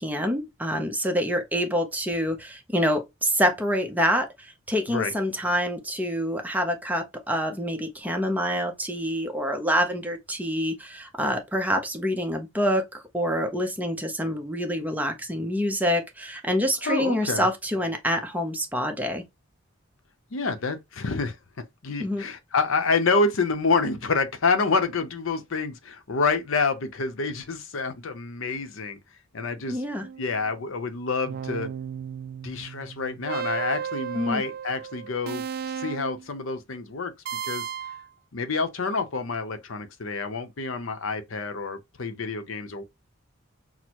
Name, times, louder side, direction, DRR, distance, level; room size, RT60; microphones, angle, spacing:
voice 1, 0.0-19.2 22.0-22.2 29.7-30.1 34.1-34.4, equal, 10° right, 0.6 m, -26 dB
voice 2, 16.8-17.5 20.3-21.4 21.8-29.0 29.3-29.8 30.2-31.7 32.4-37.1 37.4-37.7 38.3-42.8, left 4 dB, 70° left, 0.7 m, -27 dB
sound 1, 30.0-30.5 31.3-36.3 37.3-38.1, right 8 dB, 45° right, 0.3 m, -34 dB
6.1 x 2.0 x 2.9 m
head